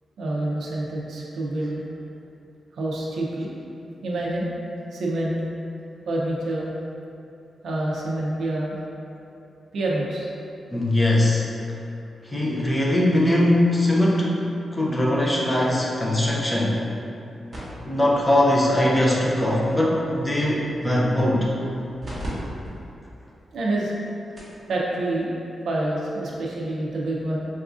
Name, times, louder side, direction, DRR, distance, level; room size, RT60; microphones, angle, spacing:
voice 1, 0.2-1.8 2.7-3.5 4.0-4.5 4.9-5.4 6.1-6.7 7.6-8.8 9.7-10.3 23.5-24.0 24.7-25.4 25.6-27.5, right 1 dB, 75° right, -4 dB, 0.4 m, -27 dB
voice 2, 10.7-11.5 12.2-14.3 14.7-16.8 17.8-21.5, left 1 dB, 15° left, -4 dB, 0.4 m, -21 dB
sound 1, 17.5-22.3 22.6-22.7 23.4-23.5 24.0-24.1 24.4-24.6 25.8-25.9, equal, 30° right, 1.0 m, -42 dB
4.1 x 2.4 x 2.4 m, 2.8 s
wide cardioid pair, 170°, 0 cm